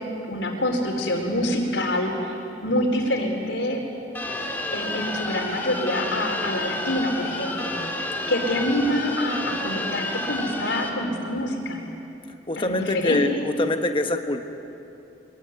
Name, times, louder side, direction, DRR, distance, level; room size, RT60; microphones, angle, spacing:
voice 1, 0.1-2.4 2.6-3.8 4.7-11.8 12.6-13.4, left 1 dB, 75° left, 2 dB, 4.4 m, -26 dB
sound 1, 4.1-10.9, left 2 dB, 10° left, 2.2 m, -30 dB
voice 2, 12.5-14.4, left 2 dB, 25° left, 5 dB, 1.3 m, -24 dB
25.0 x 21.0 x 9.6 m, 2.9 s
head